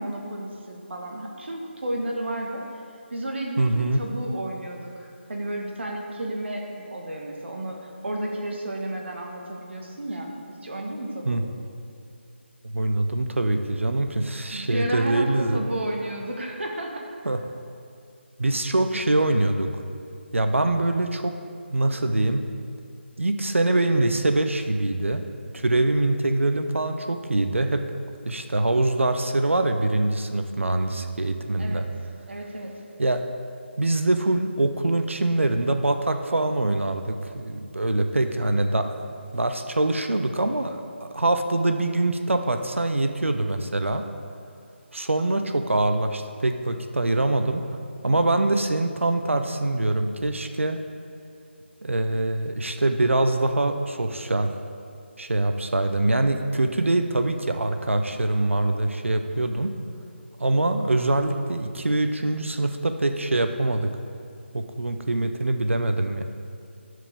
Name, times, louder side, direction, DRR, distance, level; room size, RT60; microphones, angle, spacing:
voice 1, 0.0-2.6 3.1-11.4 14.5-17.0 31.6-31.8 32.3-32.7, right 1 dB, 65° right, 0 dB, 1.4 m, -32 dB
voice 2, 3.6-4.0 11.3-11.4 12.6-15.6 17.2-17.4 18.4-19.7 20.3-21.4 21.7-22.5 23.2-25.2 25.5-27.8 28.2-31.9 33.0-33.2 33.8-44.1 44.9-47.6 48.0-50.8 51.8-54.5 55.2-59.7 60.4-63.9 64.5-66.2, right 2 dB, 90° right, 7 dB, 0.6 m, -24 dB
10.5 x 7.5 x 3.5 m, 2.4 s
figure-of-eight pair, 160°, 7 cm